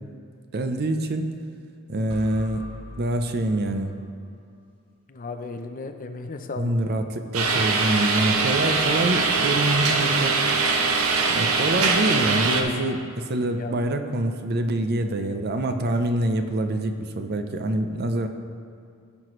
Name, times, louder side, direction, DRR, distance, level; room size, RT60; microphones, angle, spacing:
voice 1, 0.5-1.3 1.9-2.6 3.0-4.0 6.6-10.4 11.3-18.3, right 1 dB, 50° right, 7 dB, 0.6 m, -25 dB
sound 1, 2.1-4.1, left 1 dB, 25° right, 1.5 m, -42 dB
voice 2, 5.1-6.9 13.6-13.7, left 3 dB, 40° left, 6 dB, 0.6 m, -35 dB
sound 2, 7.3-12.6, right 4 dB, 80° right, 0.8 m, -22 dB
15.5 x 5.9 x 3.1 m, 2.4 s
head